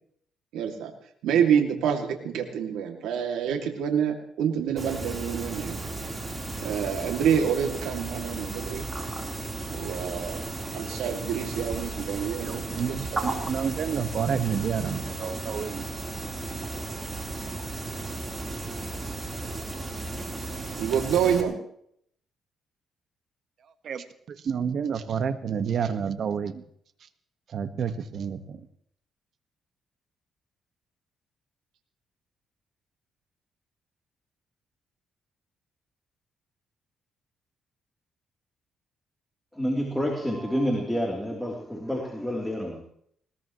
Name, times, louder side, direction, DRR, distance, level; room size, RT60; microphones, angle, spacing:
voice 1, 0.5-0.9 1.2-5.9 6.6-8.8 9.7-10.4 10.7-13.0 14.0-14.1 20.8-21.6, right 8 dB, 90° right, 3 dB, 2.5 m, -27 dB
sound 1, 4.8-21.4, right 2 dB, 25° right, 3.9 m, -34 dB
voice 2, 12.4-15.9 23.8-24.0 24.4-26.6 27.5-28.6, right 7 dB, 60° right, 10 dB, 1.5 m, -29 dB
voice 3, 39.5-42.8, equal, 5° left, 0 dB, 3.3 m, -28 dB
20.5 x 20.5 x 3.1 m, 0.66 s
cardioid pair, 90°, 0 cm